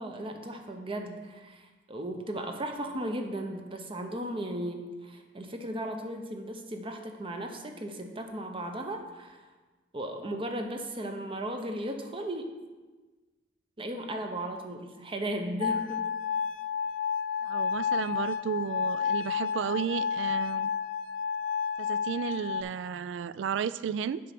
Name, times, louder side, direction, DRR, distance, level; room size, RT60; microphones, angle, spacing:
voice 1, 0.0-9.4 9.9-12.5 13.8-16.0, right 1 dB, 30° right, 5 dB, 0.8 m, -36 dB
sound 1, 15.6-22.6, left 7 dB, 80° left, 0.5 m, -31 dB
voice 2, 17.4-20.7 21.8-24.2, right 7 dB, 70° right, 17 dB, 0.3 m, -33 dB
7.6 x 5.1 x 5.9 m, 1.3 s
head